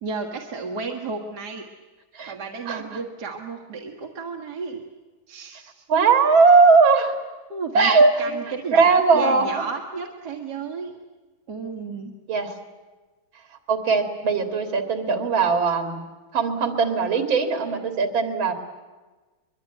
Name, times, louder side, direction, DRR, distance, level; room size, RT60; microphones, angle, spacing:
voice 1, 0.0-1.7 2.3-4.8 5.3-5.8 7.5-7.9 8.2-8.9 9.1-10.9 11.5-12.2, right 4 dB, 55° right, 1 dB, 2.2 m, -33 dB
voice 2, 5.9-7.1 7.7-8.3 8.7-9.6 12.3-12.5 13.7-16.0 16.3-18.5, right 4 dB, 80° right, 6 dB, 3.2 m, -19 dB
24.0 x 22.0 x 9.2 m, 1.2 s
omnidirectional pair, 2.2 m